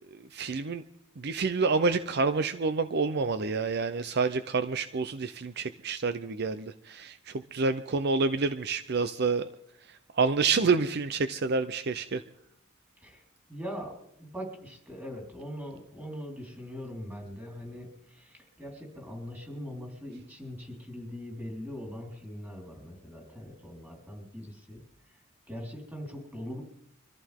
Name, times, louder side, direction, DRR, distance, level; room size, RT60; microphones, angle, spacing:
voice 1, 0.3-0.8 1.2-9.4 10.2-12.2, right 4 dB, 50° right, 11 dB, 0.6 m, -28 dB
voice 2, 13.5-24.8 25.5-26.6, equal, 10° right, -1 dB, 4.5 m, -41 dB
24.0 x 14.5 x 3.7 m, 0.73 s
head